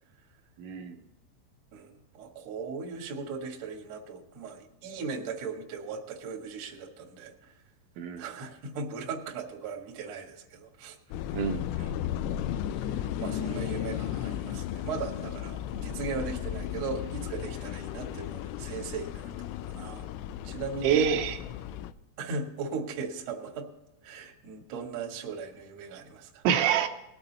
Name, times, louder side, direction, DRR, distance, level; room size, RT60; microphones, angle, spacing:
voice 1, 0.6-1.0 8.0-8.2 11.3-11.7 20.8-21.4 26.4-26.9, right 8 dB, 80° right, 5 dB, 3.0 m, -26 dB
voice 2, 1.7-7.6 8.2-11.0 11.7-11.9 12.8-20.0 20.4-21.4 22.2-23.7 24.0-26.4, right 4 dB, 60° right, 1 dB, 1.8 m, -38 dB
sound 1, 11.1-21.9, left 11 dB, 90° left, 3.1 m, -35 dB
20.0 x 8.1 x 4.1 m, 0.96 s
omnidirectional pair, 5.6 m